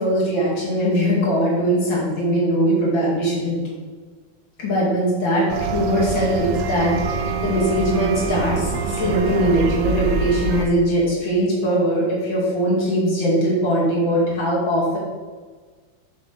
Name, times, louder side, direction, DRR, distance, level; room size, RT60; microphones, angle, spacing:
voice 1, 0.0-3.6 4.6-15.0, equal, 85° left, -6 dB, 3.1 m, -21 dB
sound 1, 5.5-10.7, right 5 dB, 80° right, 1.6 m, -24 dB
6.9 x 5.4 x 6.5 m, 1.4 s
omnidirectional pair, 2.1 m